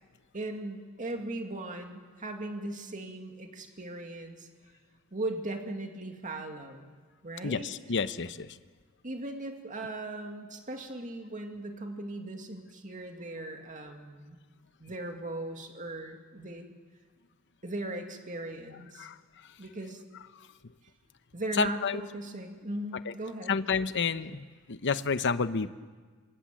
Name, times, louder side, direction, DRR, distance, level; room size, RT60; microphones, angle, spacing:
voice 1, 0.3-4.5 5.1-6.9 7.2-7.7 9.0-14.4 14.8-16.7 17.6-19.1 19.6-20.0 21.3-23.6, right 2 dB, 35° right, 4 dB, 2.3 m, -38 dB
voice 2, 7.4-8.6 19.0-19.2 20.4-20.5 21.5-22.0 23.1-23.2 23.5-25.7, left 5 dB, 55° left, 12 dB, 0.9 m, -30 dB
27.5 x 24.5 x 7.6 m, 1.5 s
head